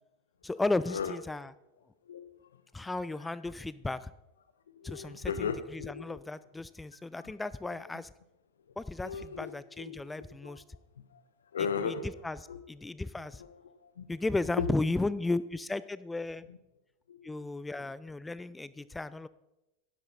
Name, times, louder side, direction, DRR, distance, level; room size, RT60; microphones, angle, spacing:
voice 1, 0.4-1.5 2.7-4.1 4.8-8.1 8.8-10.6 11.8-12.4 12.7-13.4 14.1-16.5 17.2-19.3, left 2 dB, 10° left, 17 dB, 0.4 m, -34 dB
voice 2, 4.7-6.2 7.2-7.3 9.0-10.0 10.4-10.6 11.1-11.2 11.5-12.6 13.4-14.1 14.6-14.7 16.5-16.6 17.1-17.4, left 6 dB, 75° left, 12 dB, 0.9 m, -37 dB
12.0 x 10.5 x 4.1 m, 0.95 s
figure-of-eight pair, 85°, 0 cm